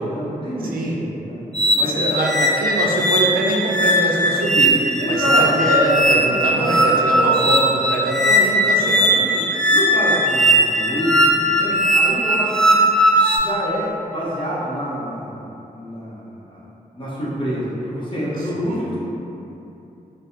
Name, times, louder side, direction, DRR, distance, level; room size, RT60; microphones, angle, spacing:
voice 1, 0.0-1.4 1.7-2.2 5.0-5.4 6.2-7.4 8.8-9.4 9.7-12.8 13.4-15.4 15.7-16.6 16.9-19.0, equal, 35° left, -8 dB, 0.9 m, -27 dB
voice 2, 0.6-1.0 1.6-9.0 18.4-18.8, right 1 dB, 85° right, -2 dB, 0.4 m, -23 dB
sound 1, 1.5-13.4, equal, 5° left, 0.4 m, -18 dB
3.3 x 2.2 x 2.8 m, 2.9 s
cardioid pair, 75°, 15 cm